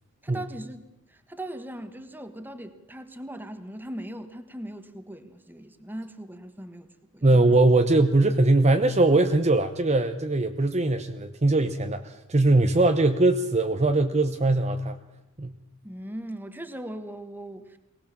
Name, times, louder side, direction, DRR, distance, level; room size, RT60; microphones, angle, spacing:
voice 1, 0.2-6.9 7.1-7.5 15.8-17.8, right 1 dB, 10° right, 9 dB, 1.4 m, -39 dB
voice 2, 7.2-15.0 15.4-15.5, right 2 dB, 30° right, 7 dB, 0.9 m, -21 dB
23.0 x 18.5 x 7.4 m, 0.93 s
head